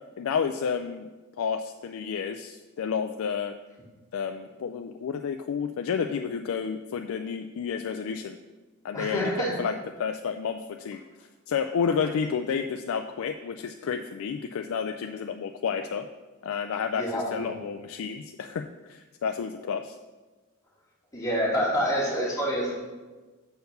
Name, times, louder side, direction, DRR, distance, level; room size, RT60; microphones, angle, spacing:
voice 1, 0.2-1.1 1.4-3.5 4.1-8.4 8.8-11.0 11.5-16.1 16.4-20.0, left 6 dB, 65° left, 6 dB, 0.3 m, -31 dB
voice 2, 8.9-9.5 17.0-17.5 21.1-22.7, equal, 15° left, -6 dB, 2.2 m, -27 dB
6.7 x 4.5 x 6.5 m, 1.3 s
head